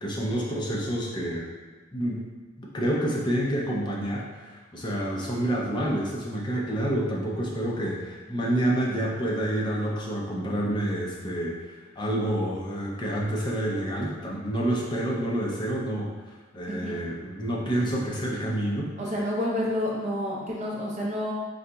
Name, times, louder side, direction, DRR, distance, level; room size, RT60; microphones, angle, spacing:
voice 1, 0.0-1.5 1.9-2.2 2.6-16.1 16.5-18.9, right 1 dB, 25° left, -4 dB, 0.5 m, -28 dB
voice 2, 16.7-17.1 19.0-21.3, left 1 dB, 40° right, -4 dB, 0.7 m, -29 dB
3.9 x 2.8 x 2.3 m, 1.4 s
head